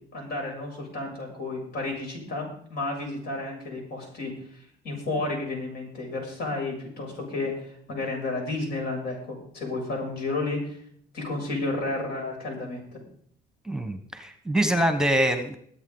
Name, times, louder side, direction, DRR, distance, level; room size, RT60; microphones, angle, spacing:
voice 1, 0.1-4.3 4.8-10.8 11.1-13.0, left 2 dB, 70° left, 0 dB, 7.0 m, -32 dB
voice 2, 13.6-15.5, right 1 dB, 5° right, 8 dB, 1.2 m, -24 dB
22.0 x 8.3 x 3.9 m, 0.64 s
cardioid pair, 110°, 17 cm